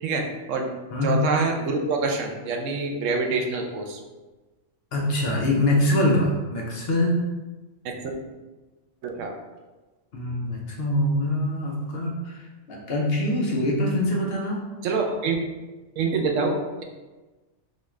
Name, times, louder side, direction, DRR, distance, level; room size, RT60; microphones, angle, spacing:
voice 1, 0.0-0.7 1.0-4.0 7.8-8.1 9.0-9.3 14.8-15.4 16.0-16.8, right 3 dB, 90° right, 3 dB, 0.9 m, -26 dB
voice 2, 4.9-7.2 10.1-12.4 12.7-14.6, left 1 dB, 60° left, -2 dB, 0.9 m, -24 dB
4.0 x 2.4 x 3.1 m, 1.2 s
omnidirectional pair, 1.3 m